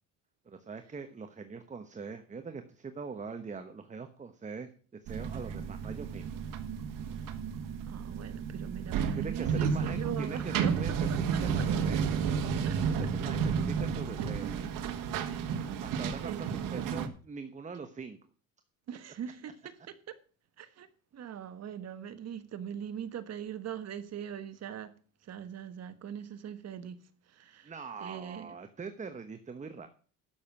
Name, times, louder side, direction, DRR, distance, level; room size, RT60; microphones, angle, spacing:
voice 1, 0.4-4.7 5.0-6.2 9.2-12.1 12.8-14.5 15.8-18.2 27.6-29.9, right 5 dB, 20° right, 1.1 m, -42 dB
sound 1, 5.1-17.1, right 6 dB, 75° right, 1.6 m, -32 dB
voice 2, 7.8-10.7 11.1-11.6 12.6-12.8 13.2-13.3 14.2-14.5 14.8-14.9 15.3-15.5 16.2-16.8 18.9-20.2 20.6-20.9 21.1-24.9 25.2-27.0 27.3-27.7 28.0-28.5, right 9 dB, 50° right, 1.4 m, -41 dB
11.5 x 7.3 x 6.0 m
cardioid pair, 120°, 33 cm